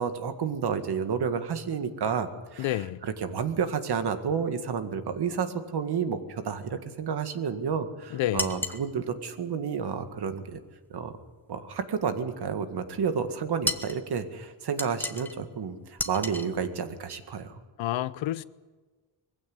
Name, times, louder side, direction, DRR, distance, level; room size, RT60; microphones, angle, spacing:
voice 1, 0.0-2.7 3.0-10.6 10.9-11.1 11.5-17.5, right 6 dB, 60° right, 2.0 m, -30 dB
voice 2, 2.6-3.0 8.1-8.5 17.8-18.4, left 14 dB, 85° left, 0.8 m, -29 dB
sound 1, 8.4-8.8 13.6-14.0 14.8-15.4 16.0-16.5, left 1 dB, 5° left, 1.3 m, -32 dB
21.5 x 16.0 x 9.7 m
cardioid pair, 125°, 45 cm